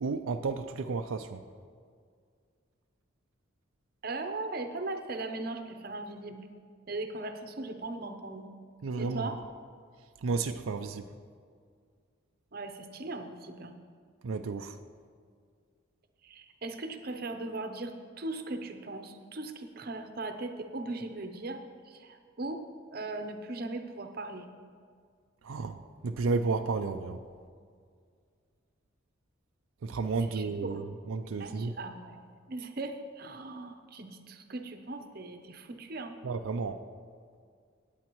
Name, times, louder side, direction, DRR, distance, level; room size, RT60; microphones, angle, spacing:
voice 1, 0.0-1.4 8.8-9.3 10.2-11.1 14.2-14.7 25.4-25.8 26.0-27.2 29.8-30.8 31.1-31.7 36.2-36.8, right 4 dB, 90° right, 7 dB, 0.5 m, -32 dB
voice 2, 4.0-6.5 6.9-8.5 9.0-9.4 12.5-13.8 16.2-24.5 30.2-30.9 31.4-36.2, right 2 dB, 45° right, 7 dB, 0.7 m, -39 dB
17.5 x 8.6 x 3.1 m, 2.1 s
head